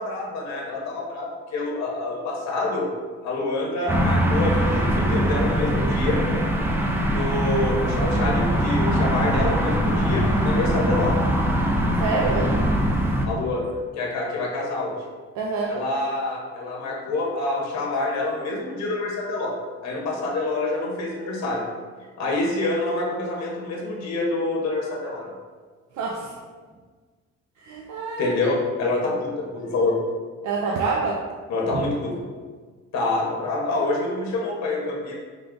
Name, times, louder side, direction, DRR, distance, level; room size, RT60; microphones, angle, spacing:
voice 1, 0.0-2.9 3.2-6.2 7.1-11.2 13.2-15.0 15.7-21.6 22.2-25.3 28.2-30.0 31.5-32.2 32.9-35.1, left 2 dB, 60° left, -1 dB, 0.9 m, -26 dB
sound 1, 3.9-13.3, equal, 10° right, 0.4 m, -22 dB
voice 2, 12.0-12.5 15.3-15.7 25.9-26.3 27.6-28.3 30.4-31.2 31.7-31.8, right 4 dB, 70° right, -2 dB, 0.5 m, -26 dB
3.7 x 2.3 x 3.7 m, 1.5 s
cardioid pair, 90°, 30 cm